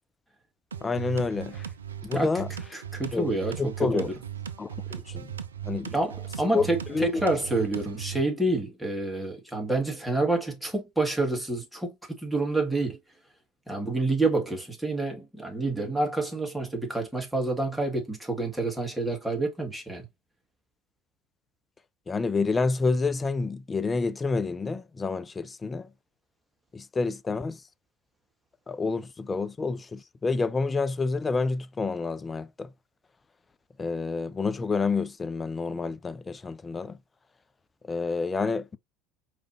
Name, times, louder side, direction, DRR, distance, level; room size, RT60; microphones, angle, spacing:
sound 1, 0.7-8.2, right 8 dB, 85° right, 0.4 m, -38 dB
voice 1, 0.8-1.7 2.0-2.5 3.1-3.3 3.6-4.1 4.6-5.3 5.6-5.9 6.5-7.2 22.1-25.9 26.7-27.6 28.7-32.7 33.8-37.0 37.9-38.8, left 4 dB, 25° left, 0.4 m, -28 dB
voice 2, 2.7-4.1 5.8-13.0 13.7-20.0, right 2 dB, ahead, 2.0 m, -28 dB
4.9 x 3.1 x 2.7 m
figure-of-eight pair, 65°, 0 cm